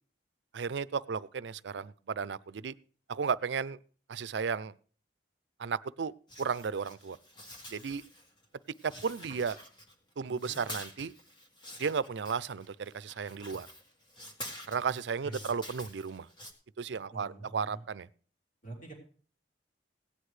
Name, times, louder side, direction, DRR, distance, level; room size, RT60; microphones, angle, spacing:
voice 1, 0.5-2.7 3.1-3.8 4.1-4.7 5.6-6.1 6.4-7.2 7.7-8.0 8.8-9.6 10.2-11.1 11.8-13.7 14.7-16.3 16.8-18.1, right 6 dB, 75° right, 0.5 m, -34 dB
sound 1, 6.3-8.4 8.7-10.1 10.3-16.5, left 1 dB, 25° left, 1.8 m, -48 dB
voice 2, 10.2-10.6 14.9-15.5 17.1-17.8 18.6-18.9, right 2 dB, 50° left, 3.4 m, -46 dB
17.0 x 9.9 x 3.2 m
head